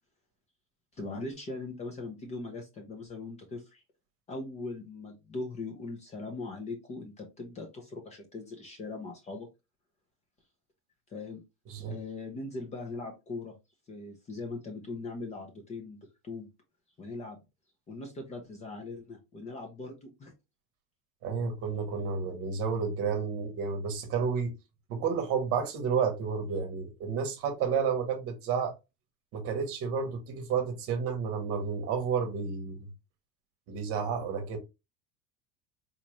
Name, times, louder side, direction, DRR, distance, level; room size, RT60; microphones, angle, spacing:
voice 1, 0.9-3.8 4.3-9.5 11.1-11.4 11.9-13.5 13.9-16.5 17.0-17.4 17.9-20.3 22.0-22.1, left 3 dB, 20° left, 0.5 m, -40 dB
voice 2, 11.7-12.0 21.2-24.5 24.9-28.7 29.3-32.9 33.7-34.6, right 6 dB, 45° right, 1.0 m, -31 dB
4.1 x 2.3 x 3.0 m
cardioid pair, 155°, 34 cm